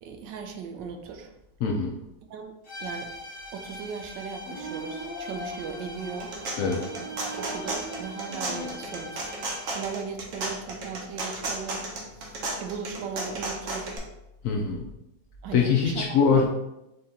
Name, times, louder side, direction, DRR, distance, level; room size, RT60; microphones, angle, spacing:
voice 1, 0.0-1.3 2.3-2.5 2.8-3.1 3.5-6.3 7.0-9.3 9.7-14.0 15.4-16.5, right 6 dB, 80° right, 4 dB, 1.3 m, -38 dB
voice 2, 1.6-1.9 6.6-6.8 14.4-14.8 15.5-16.5, left 5 dB, 75° left, 0 dB, 0.7 m, -22 dB
sound 1, 2.6-10.1, left 1 dB, 50° left, 1.5 m, -42 dB
sound 2, 4.4-8.7, right 1 dB, 30° left, 0.8 m, -40 dB
sound 3, 6.0-14.0, right 2 dB, 55° right, 1.0 m, -34 dB
4.3 x 2.8 x 3.6 m, 0.89 s
omnidirectional pair, 1.9 m